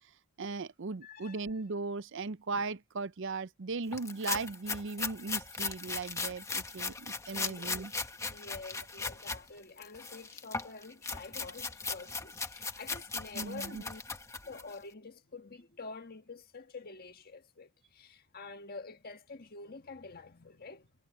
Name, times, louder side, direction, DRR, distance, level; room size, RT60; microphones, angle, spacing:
voice 1, 0.4-7.9 13.3-13.8, right 3 dB, 55° right, 0.6 m, -37 dB
voice 2, 1.0-1.5 7.3-7.9 8.2-14.0 14.4-20.9, left 3 dB, 45° left, 1.5 m, -48 dB
sound 1, 3.9-9.4 9.8-14.7, left 4 dB, 15° left, 1.2 m, -38 dB
head